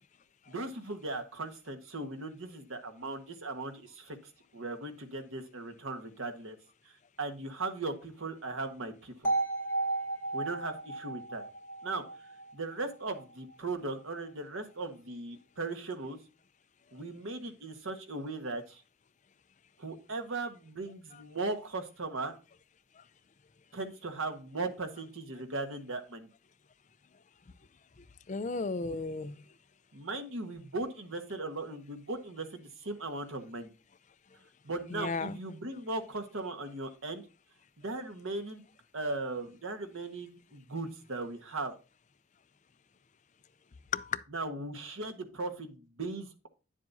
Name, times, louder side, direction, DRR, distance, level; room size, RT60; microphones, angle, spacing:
voice 1, 0.5-4.2 4.5-6.6 6.8-9.3 10.3-11.4 11.8-12.0 12.5-16.2 16.9-18.8 19.8-22.4 23.7-26.3 29.9-33.7 34.6-37.2 37.8-38.6 38.9-41.7 44.3-46.5, right 2 dB, 80° right, 1.3 m, -38 dB
sound 1, 9.2-13.2, right 2 dB, 10° left, 3.1 m, -34 dB
voice 2, 28.3-29.4 34.9-35.4 43.9-44.2, left 4 dB, 35° left, 0.5 m, -34 dB
9.7 x 7.5 x 2.6 m
head